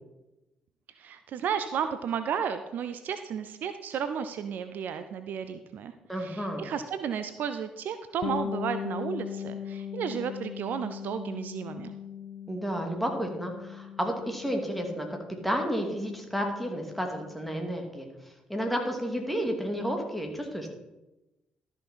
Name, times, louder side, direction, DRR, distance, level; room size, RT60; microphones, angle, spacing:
voice 1, 1.0-11.9, right 7 dB, 60° right, 10 dB, 0.5 m, -33 dB
voice 2, 6.1-6.6 12.5-15.1 15.4-18.1 18.5-20.7, equal, ahead, 2 dB, 2.5 m, -31 dB
Bass guitar, 8.2-17.8, left 8 dB, 55° left, 0.7 m, -39 dB
13.0 x 5.9 x 4.3 m, 0.99 s
figure-of-eight pair, 45°, 4 cm